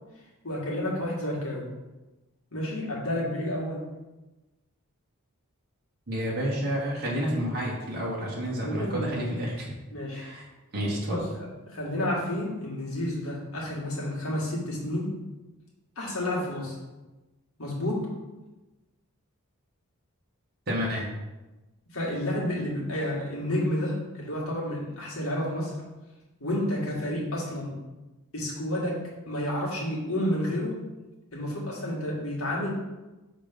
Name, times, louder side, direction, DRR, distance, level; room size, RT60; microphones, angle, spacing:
voice 1, 0.4-1.7 2.5-3.8 8.6-9.3 9.9-10.3 11.1-15.1 16.0-16.8 17.6-18.0 21.9-25.7 26.4-27.7 28.3-29.0 29.3-30.7 31.3-32.7, left 1 dB, 65° left, -5 dB, 2.0 m, -30 dB
voice 2, 6.1-9.7 10.1-10.5 10.7-11.2 20.7-21.0, equal, 45° right, -4 dB, 1.3 m, -30 dB
5.9 x 3.8 x 5.2 m, 1.1 s
head